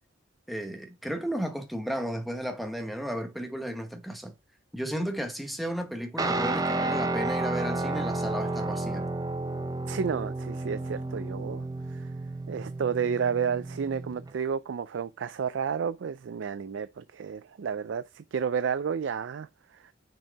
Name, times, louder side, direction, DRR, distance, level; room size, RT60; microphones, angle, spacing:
voice 1, 0.5-4.3 4.7-9.1, equal, ahead, 1.0 m, -34 dB
Guitar, 6.2-14.3, right 2 dB, 20° right, 0.6 m, -31 dB
voice 2, 9.9-12.1 12.5-19.5 19.8-19.9, right 7 dB, 70° right, 0.4 m, -31 dB
6.2 x 4.5 x 4.6 m
head